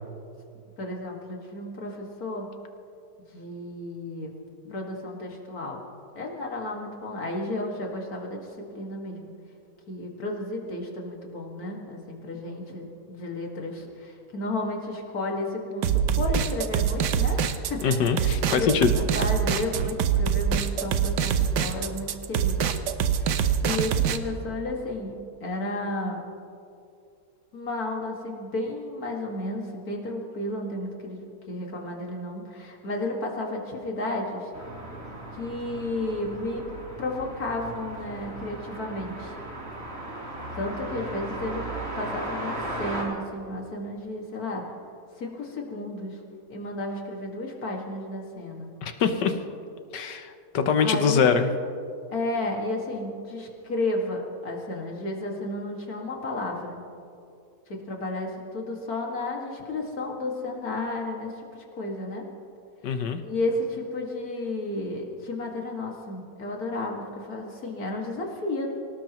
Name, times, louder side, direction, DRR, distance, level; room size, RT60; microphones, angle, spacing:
voice 1, 0.8-2.5 3.3-4.3 4.7-5.8 6.2-8.5 8.7-9.3 9.9-17.8 18.2-22.7 23.2-26.2 27.5-34.5 35.3-36.7 37.0-39.3 40.6-41.7 42.0-44.6 45.2-46.2 46.5-48.7 50.8-51.3 52.1-56.8 57.7-62.2 63.2-68.7, left 2 dB, 60° left, 0 dB, 2.5 m, -32 dB
sound 1, 15.8-24.2, right 8 dB, 75° right, 1.4 m, -24 dB
voice 2, 17.8-18.9 48.8-49.4 49.9-51.5 62.8-63.2, left 6 dB, 80° left, 8 dB, 1.6 m, -23 dB
sound 2, 34.5-43.0, right 1 dB, 50° right, 3.8 m, -36 dB
24.5 x 18.0 x 3.1 m, 2.5 s
omnidirectional pair, 1.8 m